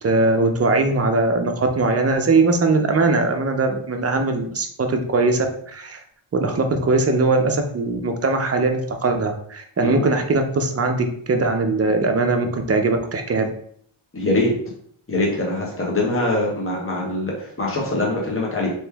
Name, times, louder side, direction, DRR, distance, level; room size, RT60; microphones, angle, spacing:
voice 1, 0.0-5.5 5.7-6.0 6.3-13.5, right 3 dB, 30° right, 4 dB, 0.6 m, -20 dB
voice 2, 14.1-14.5 15.1-18.7, left 2 dB, 25° left, -2 dB, 1.2 m, -23 dB
3.1 x 3.1 x 3.4 m, 0.64 s
cardioid pair, 70°, 49 cm